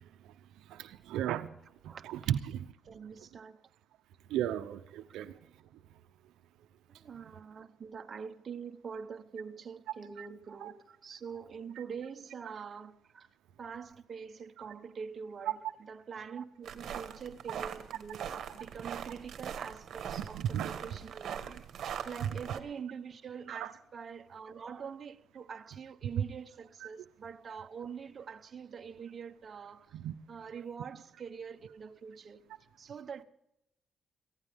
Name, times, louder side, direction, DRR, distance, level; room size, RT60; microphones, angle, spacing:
voice 1, 0.7-1.5 1.8-2.7 4.3-5.4 10.2-10.3 10.6-10.7 20.2-20.8 22.2-22.6 23.5-23.7 26.8-26.9 29.9-30.1, right 10 dB, 85° right, 0.7 m, -35 dB
voice 2, 1.9-2.3 2.8-3.6 5.1-5.3 6.9-13.3 13.6-15.6 15.9-30.0 30.3-32.4 32.8-33.2, right 6 dB, 45° right, 0.9 m, -45 dB
sound 1, 16.6-22.6, right 8 dB, 65° right, 1.4 m, -41 dB
22.5 x 15.5 x 3.6 m
cardioid pair, 90°, 0 cm